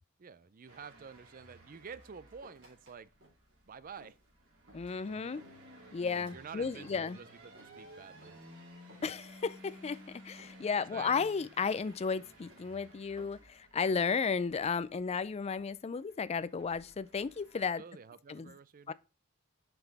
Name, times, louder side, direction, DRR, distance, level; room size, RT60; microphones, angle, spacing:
voice 1, 0.2-3.1 3.7-4.2 6.3-8.4 10.9-11.3 17.5-18.9, right 6 dB, 40° right, 0.5 m, -49 dB
sound 1, 0.7-17.6, right 1 dB, 90° right, 3.1 m, -56 dB
sound 2, 1.7-2.9 3.2-3.6 3.9-4.3 4.7-5.0 5.4-5.7 6.1-6.4 6.8-7.2 7.5-7.8 8.2-8.5 8.9-9.4 9.6-10.0 10.4-10.7 11.1-11.5 11.8-12.1 12.5-12.8 13.2-13.5 13.9-14.2 14.6-14.9, equal, 60° right, 3.5 m, -60 dB
voice 2, 4.7-5.4 5.9-7.2 9.0-17.8 18.3-18.5 18.9-19.0, left 5 dB, 30° left, 0.3 m, -34 dB
6.0 x 5.5 x 4.0 m
head